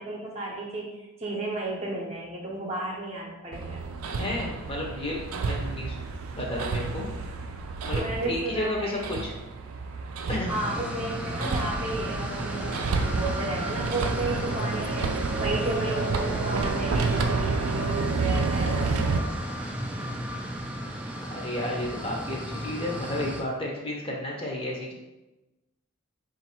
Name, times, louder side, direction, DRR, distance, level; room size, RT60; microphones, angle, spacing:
voice 1, 0.0-3.8 7.9-9.2 10.5-19.7, right 1 dB, 30° right, -2 dB, 0.7 m, -33 dB
Hammer, 3.5-19.2, right 4 dB, 75° right, 0.4 m, -30 dB
voice 2, 4.2-6.0 6.3-7.1 7.8-9.3 10.3-10.6 21.3-24.9, left 1 dB, 25° left, -1 dB, 0.7 m, -32 dB
sound 1, 10.5-23.4, equal, 5° right, 0.3 m, -34 dB
3.9 x 2.6 x 4.3 m, 1.0 s
head